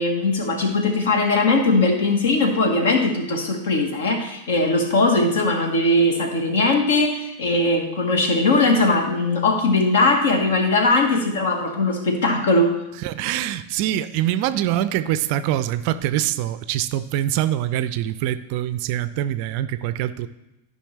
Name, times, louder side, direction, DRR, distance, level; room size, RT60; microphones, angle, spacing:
voice 1, 0.0-12.7, left 2 dB, 60° left, 4 dB, 1.5 m, -20 dB
voice 2, 13.0-20.3, right 12 dB, 45° right, 13 dB, 0.4 m, -24 dB
13.0 x 5.5 x 3.2 m, 0.91 s
figure-of-eight pair, 90°, 0 cm